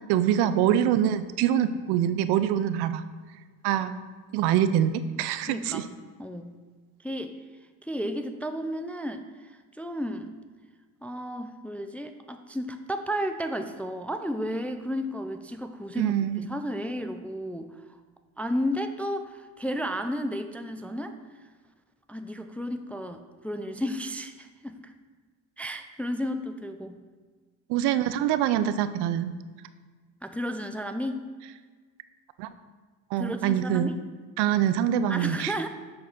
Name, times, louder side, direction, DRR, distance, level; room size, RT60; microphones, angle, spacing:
voice 1, 0.1-3.0 3.6-3.9 4.3-5.8 16.0-16.5 27.7-29.3 32.4-32.5 33.1-33.9 34.4-35.5, right 10 dB, 70° right, 12 dB, 0.6 m, -24 dB
voice 2, 5.5-5.9 6.2-6.6 7.0-7.3 7.8-10.3 11.0-17.8 18.4-21.2 22.1-24.9 25.6-27.0 30.2-31.2 33.2-34.0 35.1-35.7, equal, 5° left, 7 dB, 0.3 m, -33 dB
7.5 x 4.0 x 5.8 m, 1.5 s
supercardioid pair, 80°, 42 cm